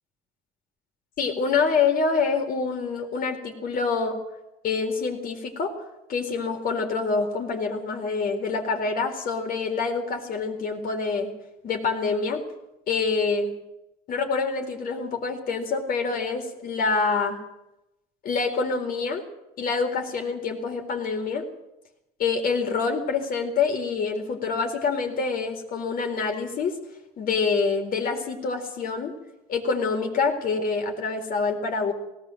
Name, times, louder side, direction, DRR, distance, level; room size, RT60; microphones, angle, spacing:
voice 1, 1.2-4.2 4.6-5.7 6.1-11.3 11.6-12.4 12.9-13.5 14.1-17.4 18.2-19.2 19.6-21.4 22.2-26.8 27.2-29.1 29.5-31.9, left 4 dB, 60° left, 4 dB, 4.2 m, -26 dB
19.0 x 18.0 x 7.8 m, 0.90 s
cardioid pair, 110°, 17 cm